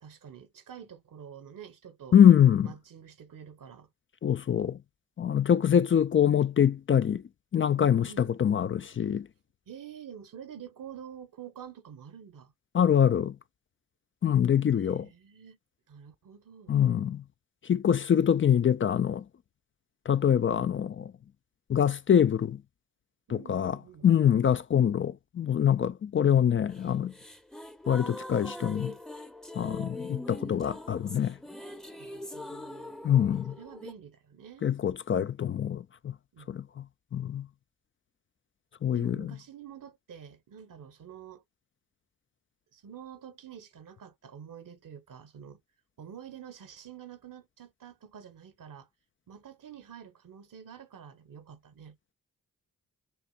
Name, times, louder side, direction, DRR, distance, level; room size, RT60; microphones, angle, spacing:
voice 1, 0.0-2.2 2.6-3.9 7.8-8.3 9.7-12.5 14.8-15.6 15.9-16.8 23.3-24.1 32.0-33.0 33.5-34.7 36.3-36.6 38.9-41.4 42.7-45.6 46.0-48.9 49.3-52.0, right 8 dB, 70° right, 1.2 m, -48 dB
voice 2, 2.1-2.7 4.2-4.8 5.2-7.2 7.5-9.3 12.7-13.3 14.2-15.1 16.7-17.2 17.6-19.2 20.1-21.1 21.7-22.6 23.3-23.8 24.0-27.1 27.9-28.9 29.6-31.4 33.0-33.5 34.6-36.1 36.5-36.8 37.1-37.5 38.8-39.2, left 9 dB, 40° left, 0.4 m, -24 dB
sound 1, 26.7-33.9, left 1 dB, ahead, 0.7 m, -42 dB
6.9 x 2.6 x 2.3 m
cardioid pair, 50°, 33 cm